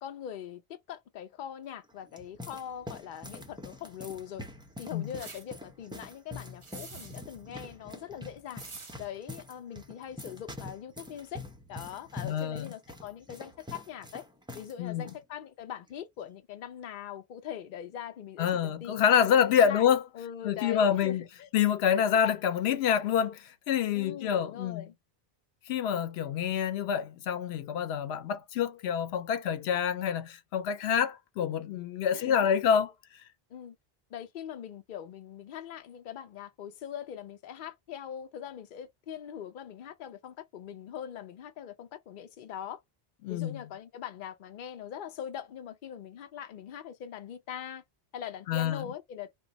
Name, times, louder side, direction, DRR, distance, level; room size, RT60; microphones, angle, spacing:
voice 1, 0.0-4.5 4.8-8.6 9.0-11.4 11.7-14.2 14.5-19.9 20.1-21.5 23.9-24.9 32.1-32.6 33.5-33.8 34.1-42.8 43.3-47.8 48.1-49.3, left 9 dB, 60° left, 0.7 m, -42 dB
sound 1, 1.8-14.7 15.0-15.2 15.9-16.2, left 2 dB, 5° right, 0.5 m, -45 dB
sound 2, 5.2-5.4 6.6-7.2 8.6-8.9, right 4 dB, 35° right, 0.7 m, -45 dB
voice 2, 12.2-12.7 14.8-15.1 18.4-20.0 20.4-21.2 21.5-24.9 25.7-32.9 43.2-43.6 48.5-48.9, left 8 dB, 90° left, 0.8 m, -27 dB
2.5 x 2.2 x 3.8 m
omnidirectional pair, 1.0 m